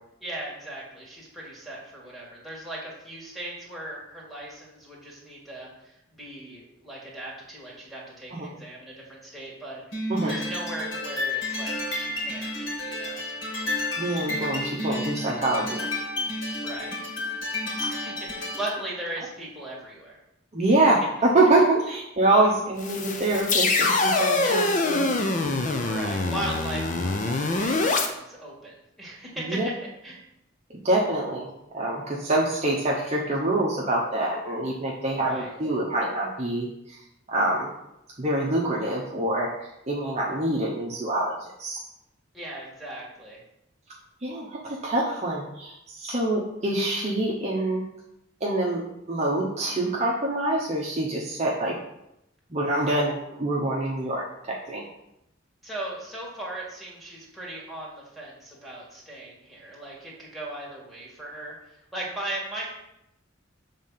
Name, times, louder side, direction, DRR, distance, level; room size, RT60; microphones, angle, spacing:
voice 1, 0.2-13.2 16.6-17.0 17.9-20.2 25.8-29.7 30.0-30.2 35.1-35.6 42.3-43.4 55.6-62.7, right 1 dB, ahead, -6 dB, 1.9 m, -38 dB
sound 1, 9.9-18.8, left 1 dB, 65° left, 2.3 m, -31 dB
voice 2, 14.0-15.8 17.8-17.9 20.5-25.1 29.4-29.7 30.8-31.5 31.7-37.0 37.3-37.7 38.2-41.8 44.2-47.8 48.4-51.8 52.5-54.8, right 2 dB, 35° right, -3 dB, 0.9 m, -25 dB
sound 2, 22.8-28.1, left 3 dB, 40° left, 0.7 m, -24 dB
7.2 x 3.7 x 5.7 m, 0.85 s
head